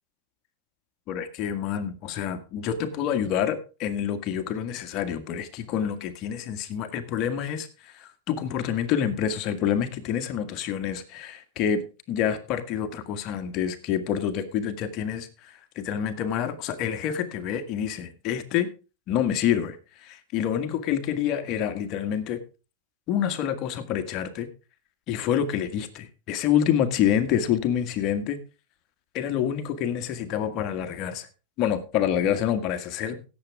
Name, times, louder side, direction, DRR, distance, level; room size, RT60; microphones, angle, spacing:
voice 1, 1.1-11.8 12.1-18.7 19.1-22.4 23.1-24.5 25.1-28.4 29.1-31.3 31.6-33.2, left 9 dB, 45° left, 8 dB, 1.7 m, -27 dB
17.0 x 7.6 x 3.6 m, 0.32 s
hypercardioid pair, 105°, 0 cm